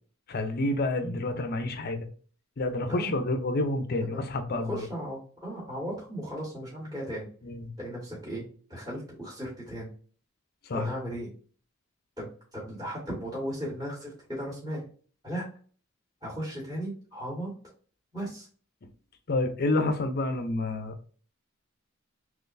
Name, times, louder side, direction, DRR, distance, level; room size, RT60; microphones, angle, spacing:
voice 1, 0.3-2.1 2.6-4.9 7.4-7.7 10.7-10.8 19.3-20.9, left 2 dB, 50° left, 0.6 m, -29 dB
voice 2, 4.1-7.3 7.8-9.9 10.7-11.3 12.2-14.9 15.2-15.5 16.2-17.5 18.1-18.5, equal, 20° right, 1.5 m, -36 dB
3.9 x 3.0 x 2.6 m
head